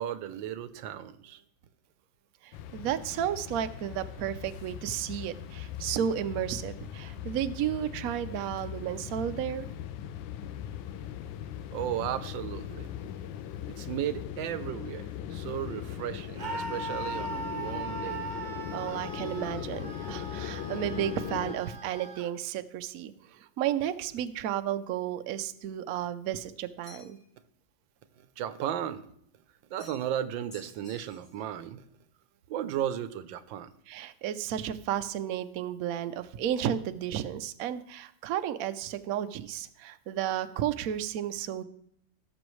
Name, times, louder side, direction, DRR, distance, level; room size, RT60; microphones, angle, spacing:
voice 1, 0.0-1.4 11.7-12.9 13.7-18.2 28.2-29.1 29.7-31.9 32.5-33.7, right 10 dB, 85° right, 1.4 m, -35 dB
voice 2, 2.4-9.7 18.7-27.2 33.9-41.6, right 10 dB, 70° right, 0.9 m, -33 dB
sound 1, 2.5-21.6, left 10 dB, 85° left, 1.3 m, -39 dB
Screaming, 16.4-22.3, right 3 dB, 35° right, 0.8 m, -39 dB
sound 2, 26.8-27.3 29.8-30.2 30.5-31.5, left 2 dB, 35° left, 3.9 m, -53 dB
17.0 x 7.0 x 3.1 m
omnidirectional pair, 2.0 m